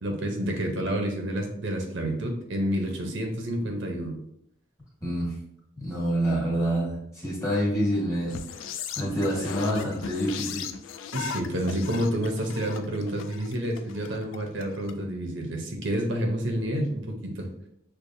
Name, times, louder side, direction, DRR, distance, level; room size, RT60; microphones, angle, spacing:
voice 1, 0.0-4.2 11.1-17.5, equal, 60° right, 2 dB, 0.7 m, -29 dB
voice 2, 5.0-5.4 5.8-8.4 9.0-10.7, equal, 15° left, -5 dB, 1.5 m, -27 dB
sound 1, 8.3-14.9, left 7 dB, 65° left, 0.3 m, -37 dB
6.5 x 2.3 x 2.6 m, 0.71 s
head